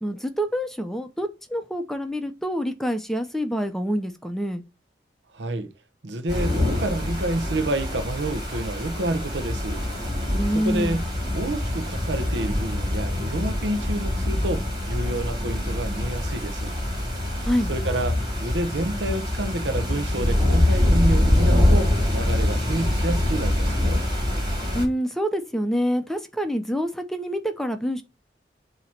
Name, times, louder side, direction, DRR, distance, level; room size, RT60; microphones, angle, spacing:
voice 1, 0.0-4.6 10.4-11.0 17.4-17.7 24.7-28.0, equal, ahead, 0.7 m, -26 dB
voice 2, 5.3-5.7 6.0-9.8 10.2-10.3 10.5-11.0 11.3-16.8 17.7-24.0, right 1 dB, 90° right, 0.8 m, -29 dB
sound 1, 6.3-24.8, left 1 dB, 30° right, 3.7 m, -24 dB
7.4 x 2.9 x 5.9 m
head